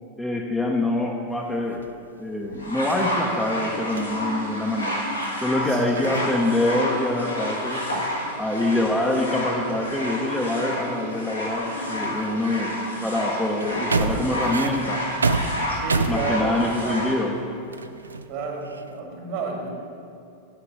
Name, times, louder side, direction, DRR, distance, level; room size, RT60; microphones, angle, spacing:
voice 1, 0.2-1.8 2.2-5.1 5.4-7.9 8.4-15.1 16.1-17.3, left 1 dB, 5° left, 0 dB, 0.7 m, -25 dB
sound 1, 1.3-3.1 3.9-4.2 5.2-5.3 5.6-6.4 6.6-17.2 17.7-19.0, right 3 dB, 75° right, 0.3 m, -32 dB
sound 2, 2.6-17.2 18.1-18.2, left 1 dB, 85° left, 1.7 m, -30 dB
voice 2, 15.7-17.0 18.3-19.7, right 3 dB, 50° right, 1 dB, 1.6 m, -31 dB
8.4 x 4.7 x 6.1 m, 2.5 s
figure-of-eight pair, 90°, 0 cm